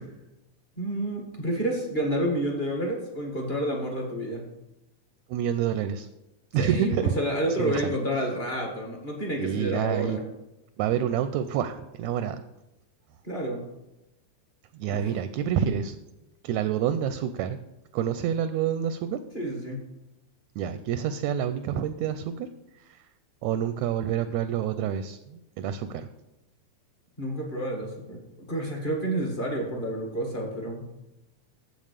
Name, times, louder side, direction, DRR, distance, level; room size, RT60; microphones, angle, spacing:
voice 1, 0.8-4.4 6.6-10.2 13.2-13.6 14.9-15.0 19.3-19.8 27.2-30.8, right 1 dB, 25° left, 0 dB, 1.2 m, -29 dB
voice 2, 5.3-6.1 6.5-7.1 7.6-7.9 9.4-10.2 10.8-12.4 14.7-15.9 16.4-17.6 17.9-19.2 20.6-22.5 22.8-23.0 23.4-26.1, right 9 dB, 80° right, 11 dB, 1.7 m, -28 dB
7.6 x 7.3 x 6.6 m, 0.95 s
omnidirectional pair, 3.6 m